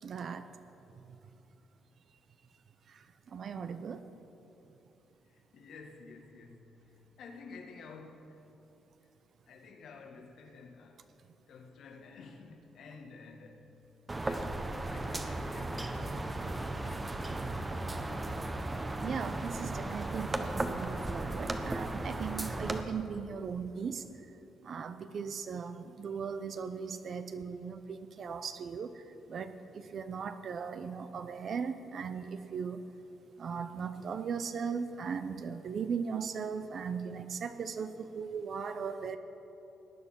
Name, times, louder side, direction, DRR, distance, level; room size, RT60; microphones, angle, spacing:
voice 1, 0.0-0.5 2.9-3.0 3.3-4.0 19.0-24.0 24.6-28.9 29.3-32.8 33.4-39.2, right 6 dB, 55° right, 10 dB, 0.7 m, -38 dB
voice 2, 5.2-8.4 9.0-9.1 9.5-11.1 11.5-13.8 14.1-17.2 27.2-27.3, left 4 dB, 70° left, 4 dB, 1.7 m, -52 dB
sound 1, 14.1-22.8, right 2 dB, 20° right, 1.0 m, -36 dB
18.0 x 9.7 x 6.2 m, 2.9 s
cardioid pair, 90°, 0 cm